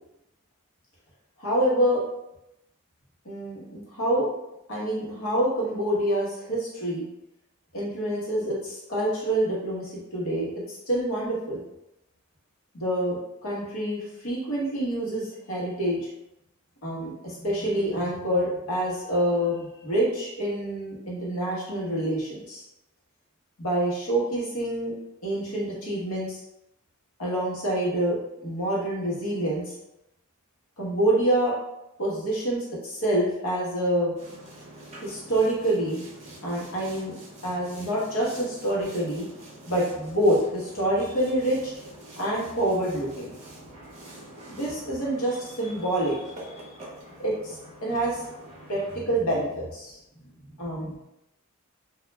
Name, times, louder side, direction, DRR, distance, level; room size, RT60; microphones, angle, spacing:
voice 1, 1.4-2.0 3.2-4.3 4.7-7.0 7.7-11.6 12.7-13.2 13.4-16.1 16.8-22.6 23.6-24.9 25.2-26.4 27.2-29.7 30.8-31.5 32.0-34.1 35.0-36.0 36.4-37.1 37.4-39.2 39.7-41.7 42.2-43.3 44.5-46.7 47.2-48.2 48.7-50.0 50.6-51.0, right 1 dB, 80° left, -5 dB, 0.9 m, -27 dB
Boat Water vehicle, 34.1-49.0, right 1 dB, 30° right, 0.6 m, -46 dB
2.3 x 2.1 x 3.0 m, 0.88 s
head